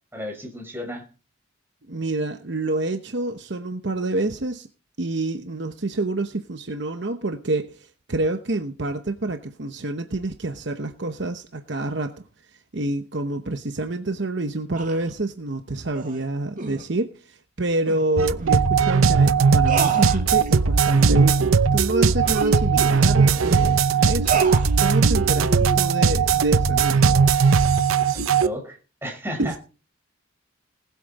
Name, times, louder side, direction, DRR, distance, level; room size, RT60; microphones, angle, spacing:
voice 1, 0.1-1.0 28.1-29.5, left 1 dB, 10° right, 4.4 m, -33 dB
voice 2, 1.9-4.7 5.0-12.2 12.7-27.2 29.4-29.6, right 2 dB, 55° right, 0.9 m, -28 dB
sound 1, 14.8-15.1 15.9-16.2 16.6-16.8 17.9-18.0 18.4-18.5 18.9-19.0 19.7-20.6 21.0-21.2 21.6-21.7 22.2-23.7 24.3-24.8 25.4-25.8, right 2 dB, 40° right, 2.2 m, -31 dB
sound 2, 18.2-28.5, right 5 dB, 85° right, 0.7 m, -18 dB
19.5 x 8.4 x 4.2 m
head